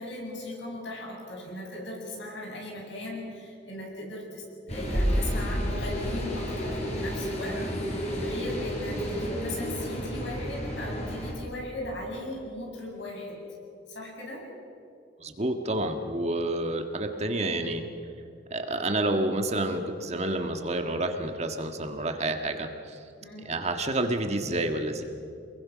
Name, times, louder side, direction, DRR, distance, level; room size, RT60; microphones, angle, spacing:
voice 1, 0.0-13.4 13.9-14.5 23.2-23.5, left 1 dB, 75° left, -1 dB, 7.6 m, -38 dB
sound 1, 4.7-11.3, equal, 35° left, 5.7 m, -30 dB
voice 2, 15.2-17.8 18.5-23.0 23.4-25.0, right 1 dB, 35° right, 5 dB, 1.6 m, -29 dB
28.0 x 21.5 x 6.3 m, 2.7 s
head